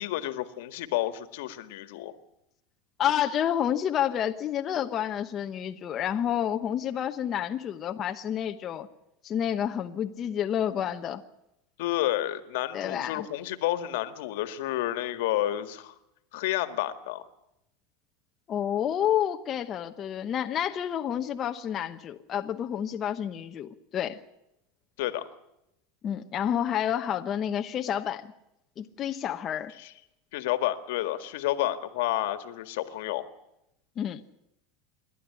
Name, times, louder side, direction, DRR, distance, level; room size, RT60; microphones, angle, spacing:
voice 1, 0.0-2.1 11.8-15.9 16.3-17.2 25.0-25.2 29.8-29.9 30.3-33.2, left 14 dB, 75° left, 10 dB, 1.8 m, -30 dB
voice 2, 3.0-8.9 9.2-11.2 12.7-13.3 18.5-24.2 26.0-28.3 28.8-29.7 34.0-34.2, left 10 dB, 30° left, 5 dB, 1.0 m, -29 dB
28.0 x 12.0 x 9.8 m, 0.84 s
supercardioid pair, 140°, 0 cm